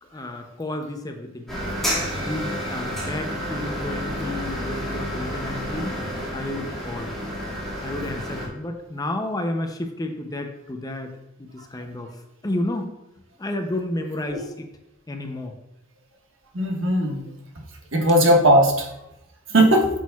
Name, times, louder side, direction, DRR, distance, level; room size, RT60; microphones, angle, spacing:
voice 1, 0.0-1.6 2.2-6.0 6.3-7.2 7.8-11.1 11.4-12.9 13.4-14.7 15.1-15.5 19.6-19.8, left 1 dB, 20° left, 5 dB, 0.5 m, -31 dB
sound 1, 1.5-8.5, equal, ahead, 2.0 m, -30 dB
voice 2, 16.5-17.2 17.9-18.9 19.5-19.9, right 1 dB, 75° right, 1 dB, 1.4 m, -17 dB
8.5 x 6.2 x 2.3 m, 0.89 s
head